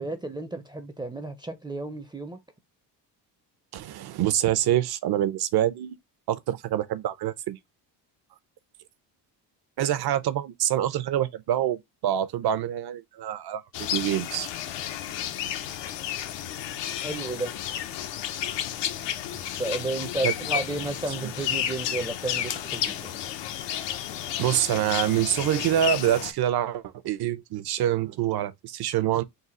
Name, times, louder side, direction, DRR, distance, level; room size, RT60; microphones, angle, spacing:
voice 1, 0.0-2.4 17.0-17.5 19.6-23.1, right 2 dB, 10° right, 0.5 m, -32 dB
voice 2, 3.7-6.0 6.3-7.6 9.8-14.5 20.2-20.3 21.2-21.3 24.4-29.2, right 11 dB, 60° right, 0.7 m, -26 dB
sound 1, 13.7-26.3, left 10 dB, 80° left, 0.8 m, -32 dB
4.0 x 2.4 x 4.0 m
cardioid pair, 125°, 43 cm